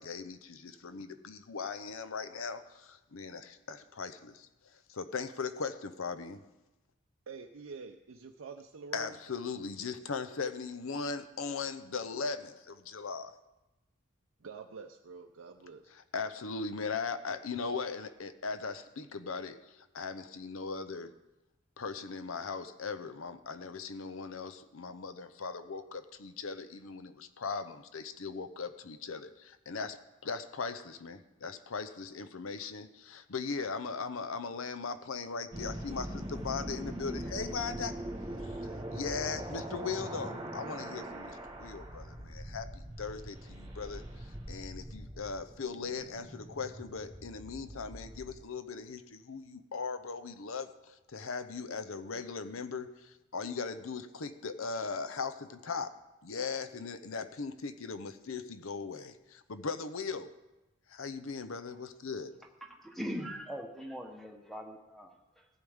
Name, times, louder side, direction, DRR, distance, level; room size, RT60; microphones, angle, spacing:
voice 1, 0.0-6.4 8.9-13.3 15.9-21.1 21.8-37.9 38.4-55.9 56.2-60.3 60.9-62.3, left 4 dB, 70° left, 11 dB, 0.7 m, -39 dB
voice 2, 7.3-9.2 14.4-15.9, right 5 dB, 70° right, 3 dB, 0.6 m, -47 dB
sound 1, 35.5-48.4, right 1 dB, 20° right, 1.4 m, -42 dB
voice 3, 62.6-65.5, equal, ahead, 3 dB, 1.1 m, -41 dB
15.0 x 9.6 x 3.6 m, 1.0 s
head